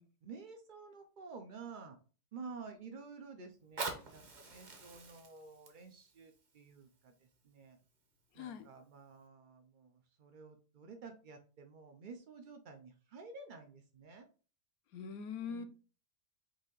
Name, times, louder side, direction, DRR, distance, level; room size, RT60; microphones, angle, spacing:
voice 1, 0.2-2.0 2.3-7.8 8.3-14.3 15.4-15.6, right 4 dB, 85° right, 0.4 m, -51 dB
Fire, 3.5-8.5 9.1-9.2, right 3 dB, 40° right, 0.8 m, -47 dB
voice 2, 8.4-8.7 14.9-15.6, left 6 dB, 75° left, 1.1 m, -42 dB
4.9 x 2.7 x 3.8 m
omnidirectional pair, 1.6 m